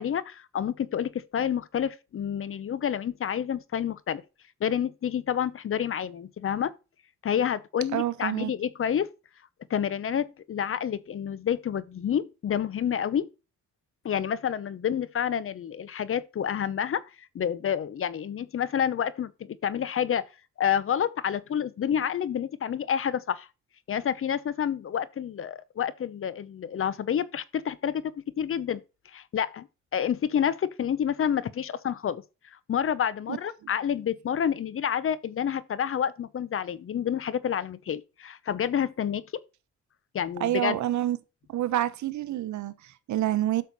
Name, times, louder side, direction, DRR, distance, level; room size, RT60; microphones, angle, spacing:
voice 1, 0.0-4.2 4.6-6.7 7.2-9.1 9.7-13.3 14.0-20.3 20.6-23.5 23.9-28.8 29.1-29.7 29.9-32.2 32.5-39.2 40.1-40.8, left 8 dB, 45° left, 0.8 m, -29 dB
voice 2, 7.9-8.5 33.3-33.4 40.4-41.2 41.5-43.6, right 13 dB, 70° right, 1.0 m, -28 dB
8.2 x 6.6 x 4.1 m
cardioid pair, 90°, 30 cm